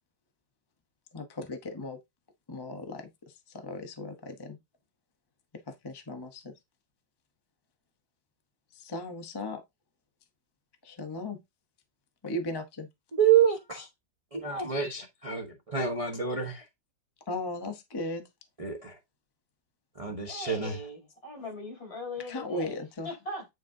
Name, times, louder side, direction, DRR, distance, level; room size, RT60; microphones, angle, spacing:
voice 1, 1.1-2.0 2.5-3.1 3.5-4.6 5.7-6.5 8.7-9.6 10.8-11.4 12.2-12.9 17.3-18.2 22.3-23.1, left 2 dB, 25° left, 0.5 m, -36 dB
voice 2, 13.1-13.9 14.3-16.6 18.6-19.0 20.0-20.8, right 8 dB, 25° right, 0.8 m, -27 dB
voice 3, 20.2-22.8 23.0-23.5, left 2 dB, 60° left, 4.6 m, -40 dB
9.2 x 5.1 x 2.7 m
omnidirectional pair, 1.9 m